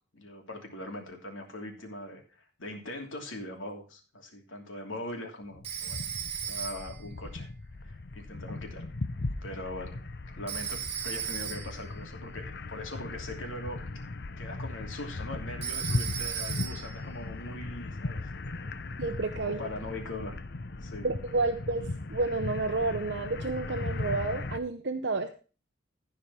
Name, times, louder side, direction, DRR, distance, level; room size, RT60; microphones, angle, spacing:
voice 1, 0.1-6.0 6.4-7.5 7.8-8.9 9.4-10.1 10.3-13.8 14.4-18.7 19.3-20.4 20.8-21.1, left 1 dB, 85° left, 3 dB, 2.9 m, -41 dB
sound 1, 5.5-24.6, left 2 dB, 55° left, 0.8 m, -38 dB
Telephone, 5.6-7.1 10.5-11.9 15.6-17.0, right 8 dB, 30° right, 2.4 m, -36 dB
voice 2, 19.0-19.6 21.0-21.8 22.1-25.3, right 3 dB, 60° right, 6 dB, 0.8 m, -30 dB
15.0 x 5.1 x 5.6 m, 0.36 s
head